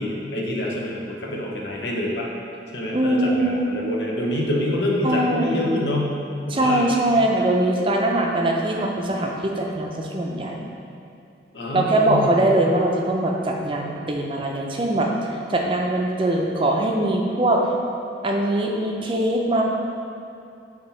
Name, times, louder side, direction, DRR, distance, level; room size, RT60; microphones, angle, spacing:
voice 1, 0.0-2.3 2.7-6.2 6.5-6.8 11.5-12.3, left 1 dB, 80° left, -2 dB, 0.9 m, -26 dB
voice 2, 2.9-3.7 5.0-5.8 6.5-10.7 11.7-15.1 15.5-17.7 18.2-19.6, right 1 dB, 30° right, 0 dB, 0.5 m, -22 dB
6.1 x 2.8 x 5.4 m, 2.6 s
head